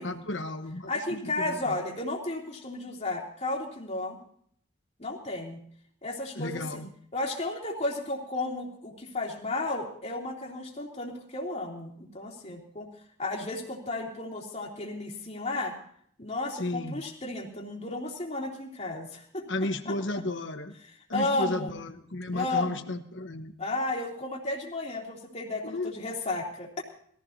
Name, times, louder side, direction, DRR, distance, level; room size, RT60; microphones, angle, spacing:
voice 1, 0.0-1.8 6.3-6.9 16.6-17.0 19.5-20.8 21.1-23.5 25.6-26.0, left 2 dB, 70° left, 7 dB, 1.2 m, -33 dB
voice 2, 0.9-4.2 5.0-5.6 6.0-6.8 7.1-12.9 13.2-15.8 16.2-19.5 19.8-19.9 21.1-21.7 22.3-22.8 23.6-26.8, left 2 dB, 35° left, -1 dB, 2.9 m, -33 dB
21.0 x 15.0 x 2.8 m, 0.62 s
head